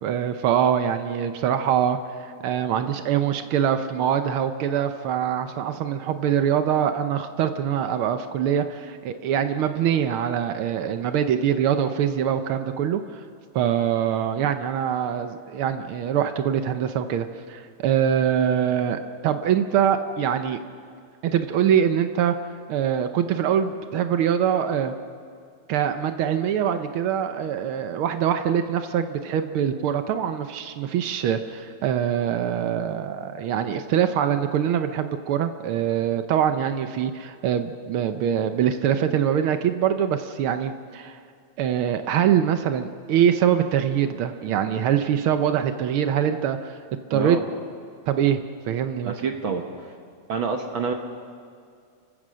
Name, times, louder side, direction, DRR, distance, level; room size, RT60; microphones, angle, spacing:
voice 1, 0.0-13.2 13.5-20.6 21.2-24.9 25.7-41.2 41.6-46.8 47.1-47.4 48.1-49.1, right 9 dB, 85° right, 8 dB, 1.1 m, -24 dB
voice 2, 47.1-47.4 49.0-49.9 50.3-50.9, right 5 dB, 55° right, 4 dB, 1.4 m, -27 dB
29.5 x 16.0 x 6.3 m, 2.2 s
omnidirectional pair, 3.5 m